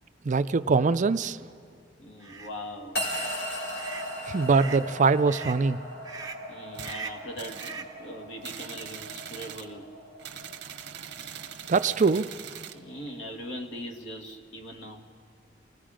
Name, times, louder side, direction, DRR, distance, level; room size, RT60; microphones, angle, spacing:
voice 1, 0.2-1.4 4.3-5.8 11.7-12.3, right 4 dB, 40° right, 12 dB, 0.4 m, -23 dB
voice 2, 2.0-3.0 6.5-9.9 12.7-15.1, equal, 85° left, 2 dB, 2.0 m, -40 dB
sound 1, 2.2-2.5 3.0-3.3 3.7-4.1 4.5-4.9 5.3-5.6 6.0-6.5 6.8-7.3 7.6-8.0, right 5 dB, 20° right, 1.3 m, -41 dB
sound 2, 2.9-13.3, equal, 65° left, 5.0 m, -38 dB
sound 3, 6.7-7.0 7.4-7.8 8.4-9.7 10.2-12.8, right 9 dB, 65° right, 0.9 m, -42 dB
29.0 x 19.0 x 5.1 m, 2.3 s
head